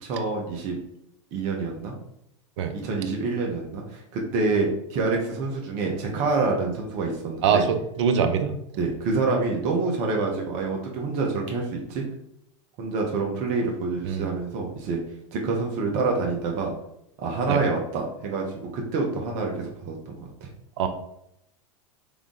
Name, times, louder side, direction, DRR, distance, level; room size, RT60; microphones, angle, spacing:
voice 1, 0.0-0.8 1.3-1.9 2.8-7.6 8.8-12.0 12.8-15.0 15.3-16.7 17.2-20.5, right 3 dB, 45° right, 0 dB, 1.0 m, -27 dB
voice 2, 7.4-8.5 14.0-14.3 17.5-17.6 20.8-20.9, right 6 dB, 65° right, 7 dB, 0.6 m, -23 dB
3.6 x 3.6 x 3.7 m, 0.77 s
hypercardioid pair, 100°, 16 cm